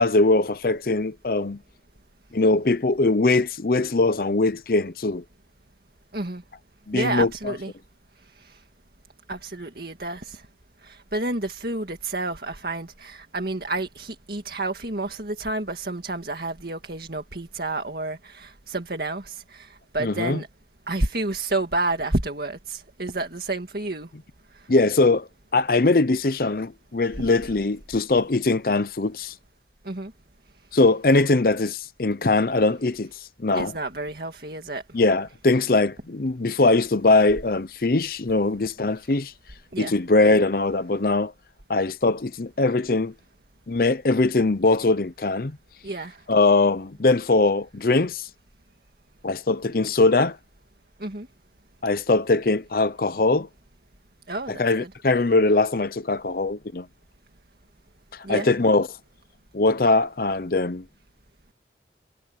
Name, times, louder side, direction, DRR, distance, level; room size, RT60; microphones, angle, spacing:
voice 1, 0.0-1.6 2.3-5.2 6.9-7.3 20.0-20.4 24.7-29.3 30.7-33.1 33.4-33.7 34.9-39.3 39.8-41.3 41.7-43.1 43.7-45.5 46.3-48.3 49.2-50.4 51.8-53.5 54.5-56.9 58.1-58.9 59.5-60.8, left 3 dB, 50° left, 0.7 m, -21 dB
voice 2, 6.9-7.7 8.4-8.6 9.3-10.4 10.8-20.5 20.9-24.1 27.2-27.3 29.9-30.1 33.5-34.8 39.7-40.0 45.8-46.2 51.0-51.3 54.3-54.9 58.2-58.5, right 2 dB, 55° right, 2.1 m, -30 dB
head